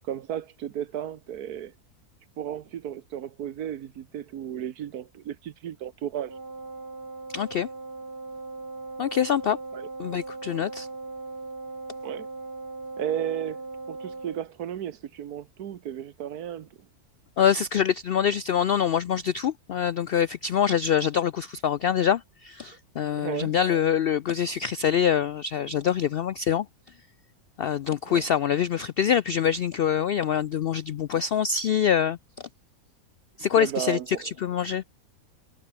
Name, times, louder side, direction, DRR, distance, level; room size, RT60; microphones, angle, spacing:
voice 1, 0.0-1.7 2.4-6.3 9.7-9.9 12.0-12.3 13.0-16.7 23.1-23.5 28.0-28.2 33.5-34.3, right 10 dB, 85° right, 1.5 m, -34 dB
Wind instrument woodwind instrument, 6.2-14.5, right 3 dB, 20° right, 0.6 m, -39 dB
voice 2, 7.3-7.7 9.0-9.6 10.0-10.9 17.4-26.7 27.6-32.2 33.4-34.8, left 8 dB, 80° left, 0.5 m, -25 dB
omnidirectional pair, 1.6 m